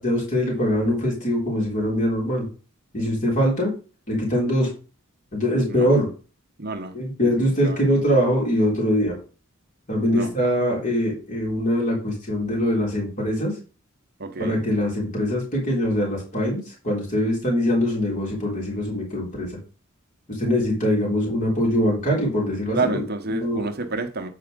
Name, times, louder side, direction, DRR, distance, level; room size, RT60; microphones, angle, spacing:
voice 1, 0.0-2.5 2.9-3.7 4.1-4.7 5.3-6.1 6.9-9.2 9.9-13.5 14.4-19.6 20.3-23.0 23.3-23.6, equal, 40° left, 3.6 m, -23 dB
voice 2, 6.6-7.0 7.2-7.9 10.1-10.3 14.2-14.6 22.7-24.3, right 3 dB, 45° right, 1.0 m, -29 dB
8.3 x 4.9 x 5.1 m
head